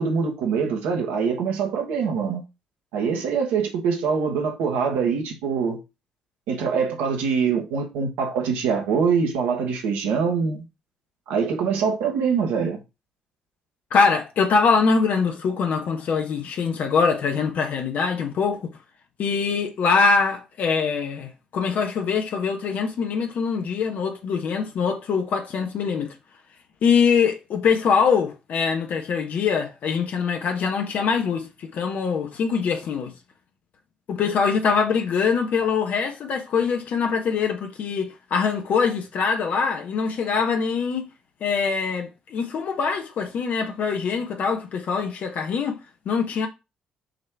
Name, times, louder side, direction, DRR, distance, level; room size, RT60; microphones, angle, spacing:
voice 1, 0.0-2.4 2.9-5.8 6.5-10.6 11.3-12.8, right 6 dB, 70° right, 1.4 m, -24 dB
voice 2, 13.9-18.8 19.2-26.1 26.8-33.1 34.1-41.1 41.4-45.8 46.0-46.5, left 5 dB, 55° left, 1.3 m, -23 dB
6.4 x 3.3 x 4.7 m
figure-of-eight pair, 45°, 3 cm